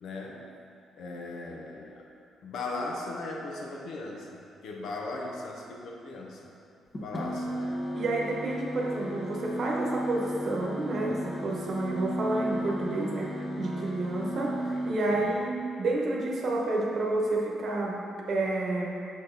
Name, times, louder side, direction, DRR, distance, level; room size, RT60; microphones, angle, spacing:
voice 1, 0.0-0.5 1.0-2.1 2.4-6.5 7.0-7.8 15.1-15.4, left 2 dB, 75° left, -1 dB, 0.9 m, -38 dB
sound 1, 6.9-14.9, equal, 30° left, 0.9 m, -34 dB
voice 2, 7.9-18.0 18.3-19.0, right 2 dB, 55° right, -1 dB, 1.1 m, -30 dB
6.5 x 4.2 x 3.9 m, 2.7 s
cardioid pair, 90°, 0 cm